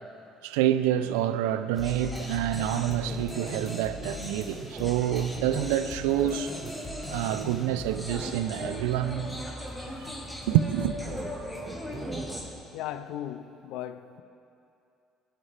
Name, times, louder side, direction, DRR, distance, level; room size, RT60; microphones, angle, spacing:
voice 1, 0.4-6.5 7.1-9.3 10.5-10.9, right 11 dB, 85° right, 0.3 m, -27 dB
sound 1, 1.7-12.4, left 1 dB, 5° left, 2.0 m, -38 dB
sound 2, 2.9-3.7 4.5-4.9 5.3-5.7 6.1-6.3 6.6-6.7 7.3-8.8 11.0-11.3 11.6-12.4, right 5 dB, 50° right, 0.9 m, -41 dB
sound 3, 5.6-12.5, left 2 dB, 35° left, 2.5 m, -54 dB
voice 2, 12.7-14.2, left 11 dB, 75° left, 0.4 m, -37 dB
17.0 x 5.7 x 3.3 m
hypercardioid pair, 65°, 0 cm